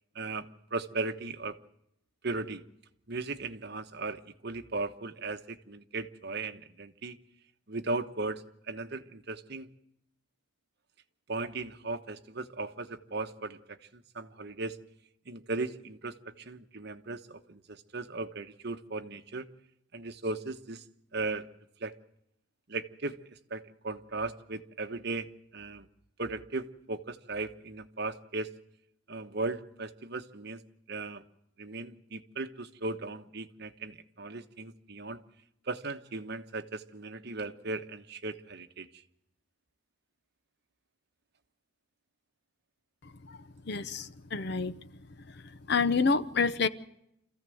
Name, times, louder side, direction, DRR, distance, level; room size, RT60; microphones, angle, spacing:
voice 1, 0.1-1.6 2.2-2.6 3.1-7.2 7.7-9.7 11.3-14.8 15.3-19.5 19.9-20.8 21.1-21.5 21.8-21.9 22.7-25.9 26.2-28.5 29.1-30.6 30.9-31.2 31.6-35.2 35.7-39.0, right 3 dB, 50° right, 8 dB, 1.1 m, -37 dB
voice 2, 43.7-44.7 45.7-46.7, left 4 dB, 50° left, 14 dB, 0.7 m, -27 dB
27.0 x 15.0 x 7.8 m, 0.82 s
head